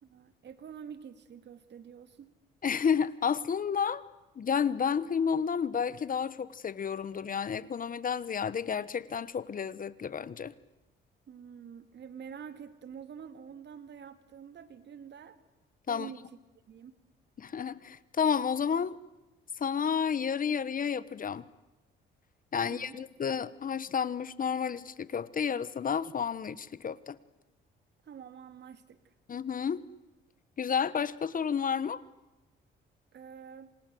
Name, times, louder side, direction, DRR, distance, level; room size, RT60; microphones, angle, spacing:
voice 1, 0.0-2.3 11.3-15.4 15.9-16.2 16.7-17.0 22.6-23.0 28.0-29.1 33.1-33.7, right 7 dB, 60° right, 11 dB, 2.6 m, -47 dB
voice 2, 2.6-4.0 4.4-10.5 15.9-16.1 17.4-19.0 19.6-21.4 22.5-27.2 29.3-29.8 30.6-32.0, left 7 dB, 45° left, 17 dB, 1.3 m, -31 dB
28.0 x 27.0 x 7.9 m, 1.0 s
cardioid pair, 90°, 20 cm